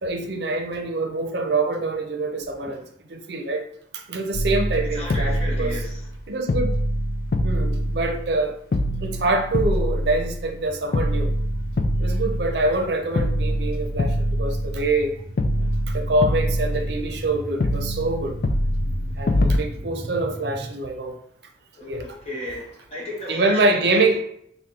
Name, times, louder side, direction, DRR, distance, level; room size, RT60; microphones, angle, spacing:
voice 1, 0.0-2.8 3.1-3.7 3.9-5.7 6.3-6.8 7.4-8.6 9.0-11.3 12.0-15.2 15.9-18.4 19.2-21.2 21.9-22.0 23.3-24.2, right 2 dB, 75° right, 4 dB, 0.6 m, -25 dB
sound 1, 4.3-6.2 6.5-8.4 8.7-10.6 10.9-12.9 13.2-15.1 15.4-17.3 17.6-19.6, equal, 55° left, 0.4 m, -24 dB
voice 2, 4.9-6.1 13.5-13.6 15.6-15.8 21.7-24.2, equal, 35° left, -4 dB, 1.3 m, -34 dB
sound 2, 10.6-20.7, right 1 dB, 25° right, 0.4 m, -39 dB
3.7 x 2.2 x 4.3 m, 0.68 s
head